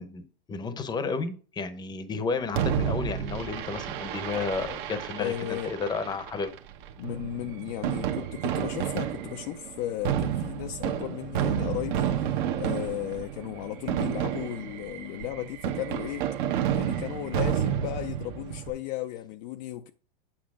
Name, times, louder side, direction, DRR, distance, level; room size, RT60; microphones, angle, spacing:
voice 1, 0.0-6.5, left 4 dB, 15° left, 0.8 m, -32 dB
Fireworks, 2.5-18.7, right 9 dB, 55° right, 1.2 m, -31 dB
voice 2, 5.2-5.8 7.0-16.3 16.7-19.9, left 13 dB, 45° left, 0.5 m, -35 dB
8.7 x 5.6 x 3.7 m
hypercardioid pair, 130°, 30 cm